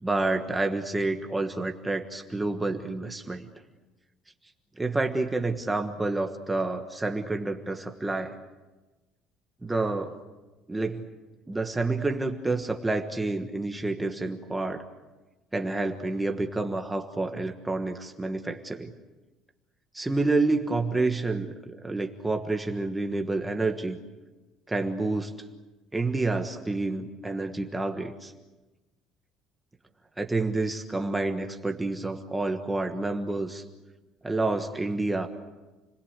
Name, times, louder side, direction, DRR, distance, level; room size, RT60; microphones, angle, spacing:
voice 1, 0.0-3.5 4.8-8.4 9.6-10.2 10.7-11.1 11.5-14.8 15.5-18.9 19.9-24.0 24.7-25.3 25.9-28.3 30.2-33.6 34.2-35.3, right 2 dB, 10° right, 4 dB, 1.3 m, -29 dB
30.0 x 20.5 x 8.2 m, 1.2 s
cardioid pair, 155°, 0 cm